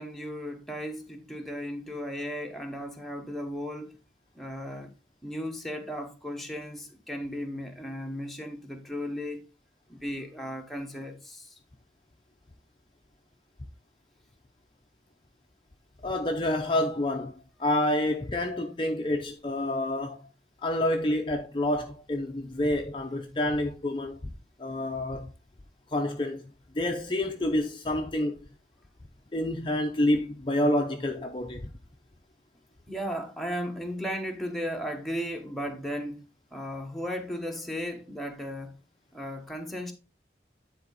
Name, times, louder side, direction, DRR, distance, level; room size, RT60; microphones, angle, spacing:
voice 1, 0.0-3.9 4.3-4.9 5.2-9.4 9.9-11.6 32.9-36.2 36.5-38.8 39.1-39.9, equal, ahead, 1.1 m, -35 dB
voice 2, 16.0-20.3 20.6-24.3 24.6-25.3 25.9-26.4 26.7-28.5 29.3-31.7, left 1 dB, 30° left, 0.6 m, -28 dB
9.7 x 4.1 x 4.0 m
head